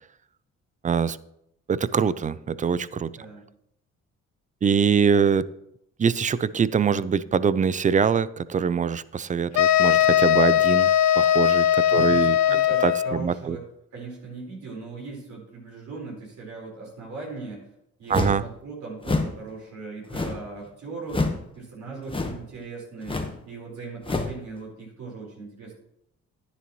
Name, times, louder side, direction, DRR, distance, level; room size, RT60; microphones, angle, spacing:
voice 1, 0.8-1.2 1.7-3.1 4.6-5.5 6.0-10.9 11.2-12.4 12.8-13.6 18.1-18.4, right 6 dB, 25° right, 18 dB, 0.4 m, -23 dB
voice 2, 3.1-3.4 11.9-13.7 13.9-17.7 18.0-23.2 23.5-25.8, right 3 dB, 70° right, -3 dB, 4.5 m, -39 dB
sound 1, 9.6-13.2, left 11 dB, 60° left, 0.6 m, -19 dB
sound 2, 18.1-18.5 19.0-19.4 20.1-20.5 21.1-21.4 22.1-22.5 23.0-23.4 24.0-24.4, left 3 dB, 15° left, 1.2 m, -27 dB
11.0 x 9.7 x 3.1 m, 0.78 s
cardioid pair, 90°, 30 cm